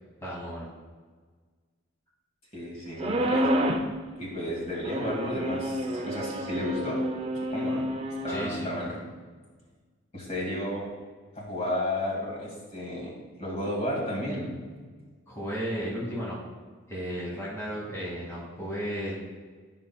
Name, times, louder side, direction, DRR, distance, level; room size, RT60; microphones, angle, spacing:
voice 1, 0.2-0.7 8.3-8.7 15.3-16.4 16.9-19.2, equal, 15° left, -8 dB, 1.6 m, -34 dB
voice 2, 2.5-3.5 4.2-7.0 7.5-7.8 8.2-8.9 10.1-10.9 11.4-13.1 13.4-14.5, left 1 dB, 30° left, -4 dB, 2.1 m, -32 dB
sound 1, 3.0-3.9 4.8-8.5, equal, 25° right, 0.4 m, -29 dB
12.5 x 5.6 x 2.3 m, 1.5 s
head